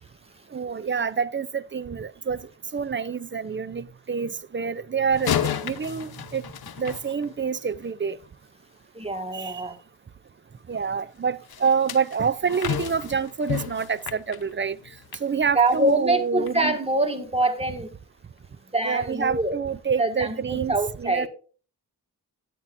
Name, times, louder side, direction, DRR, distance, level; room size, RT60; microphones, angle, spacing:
voice 1, 0.5-2.4 2.7-6.4 6.8-8.2 9.3-9.6 10.7-14.8 15.2-16.8 18.8-21.3, right 6 dB, 30° right, 0.5 m, -27 dB
sound 1, 5.1-7.7 11.5-15.3 15.7-15.9 16.5-16.6, left 9 dB, 75° left, 0.9 m, -32 dB
voice 2, 8.9-9.8 15.5-17.9 18.7-19.6 20.0-21.3, right 2 dB, 15° right, 2.0 m, -24 dB
10.5 x 10.0 x 2.6 m
cardioid pair, 70°, 37 cm